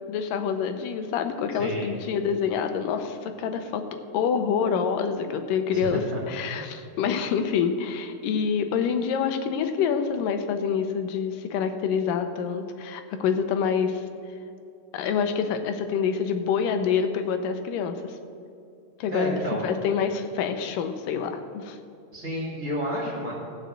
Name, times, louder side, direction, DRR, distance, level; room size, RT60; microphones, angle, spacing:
voice 1, 0.1-14.0 14.9-18.2 19.0-21.8, left 6 dB, 80° left, 7 dB, 2.4 m, -27 dB
voice 2, 5.7-6.2 6.5-6.6 19.1-19.6 22.1-23.3, right 1 dB, 25° right, -4 dB, 2.3 m, -31 dB
15.0 x 5.2 x 7.8 m, 2.6 s
omnidirectional pair, 3.9 m